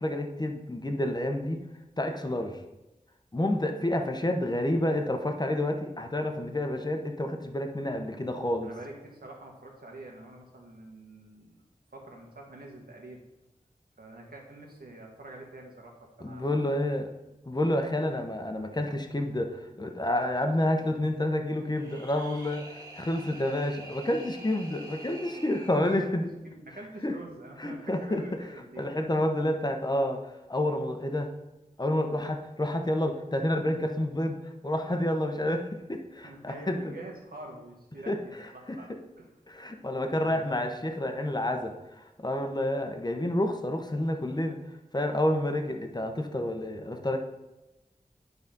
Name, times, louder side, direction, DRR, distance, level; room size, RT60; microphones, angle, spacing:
voice 1, 0.0-1.6 2.0-2.6 3.3-8.7 16.2-17.1 17.5-19.5 19.8-22.7 22.9-26.3 27.0-27.1 27.6-28.2 28.8-30.2 30.5-31.3 31.8-34.4 34.6-36.9 38.1-38.2 39.5-44.6 44.9-47.2, left 1 dB, 30° left, 4 dB, 1.0 m, -29 dB
voice 2, 8.6-11.6 11.9-13.2 14.0-17.0 25.8-26.1 26.4-28.8 36.2-39.3 40.1-40.5, right 2 dB, 85° right, -1 dB, 1.7 m, -46 dB
sound 1, 21.6-26.1, right 1 dB, 25° right, 1.8 m, -47 dB
9.6 x 4.0 x 5.4 m, 0.99 s
wide cardioid pair, 65°, 15 cm